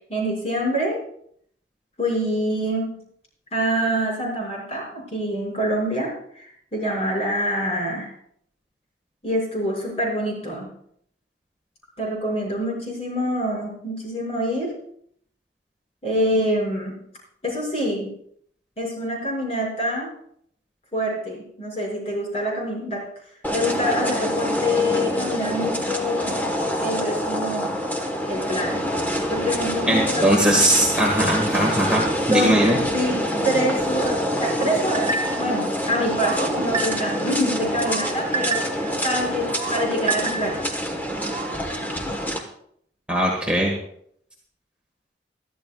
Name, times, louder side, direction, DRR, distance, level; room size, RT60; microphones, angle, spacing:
voice 1, 0.1-1.0 2.0-3.0 3.5-8.1 9.2-10.7 12.0-14.8 16.0-17.0 17.4-18.1 18.8-20.1 20.9-23.1 23.5-26.4 26.8-27.8 28.3-30.6 32.0-35.1 35.4-40.7, equal, 35° left, -3 dB, 5.9 m, -26 dB
sound 1, 23.4-42.4, equal, 10° left, 1.2 m, -26 dB
voice 2, 29.9-32.8 43.1-43.7, right 1 dB, 5° right, -2 dB, 1.6 m, -20 dB
sound 2, 34.9-35.5 36.0-37.2 37.6-38.9 39.4-40.7 41.1-41.6, right 4 dB, 35° right, 1.2 m, -30 dB
22.0 x 13.0 x 2.4 m, 0.68 s
head